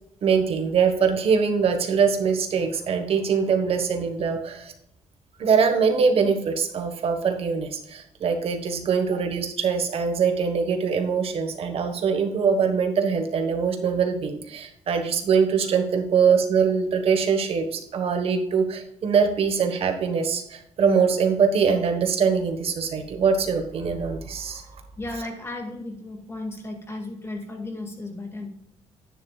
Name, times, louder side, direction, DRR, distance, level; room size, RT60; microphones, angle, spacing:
voice 1, 0.2-4.7 5.4-24.6, right 6 dB, 55° right, 5 dB, 1.4 m, -23 dB
voice 2, 25.0-28.5, left 2 dB, 20° left, 3 dB, 2.0 m, -34 dB
11.0 x 9.8 x 2.4 m, 0.77 s
cardioid pair, 140°, 12 cm